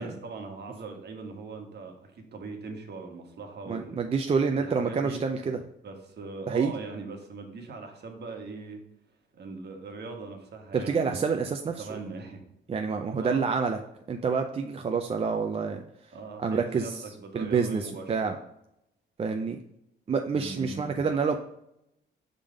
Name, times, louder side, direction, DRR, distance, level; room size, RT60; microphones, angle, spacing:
voice 1, 0.0-4.0 4.6-5.2 5.8-8.8 9.3-11.3 11.8-12.4 13.2-13.5 16.1-18.4 20.3-21.1, right 4 dB, 55° right, 3 dB, 1.4 m, -40 dB
voice 2, 3.7-5.6 6.5-6.7 10.7-11.9 12.7-13.8 14.1-15.8 16.4-17.0 17.3-18.4 19.2-19.6 20.1-21.4, right 5 dB, 30° right, 4 dB, 0.5 m, -27 dB
5.2 x 3.6 x 5.0 m, 0.79 s
cardioid pair, 90°, 20 cm